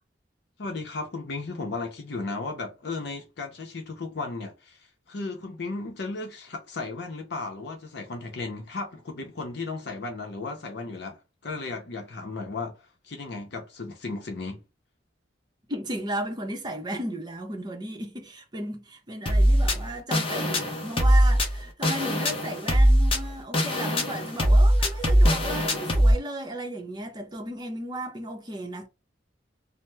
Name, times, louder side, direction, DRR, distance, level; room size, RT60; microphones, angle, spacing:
voice 1, 0.6-14.6, left 3 dB, 65° left, 0.6 m, -35 dB
voice 2, 15.7-28.9, right 1 dB, 25° right, 0.7 m, -35 dB
sound 1, 19.3-26.1, equal, 30° left, 0.7 m, -21 dB
2.8 x 2.0 x 3.3 m
head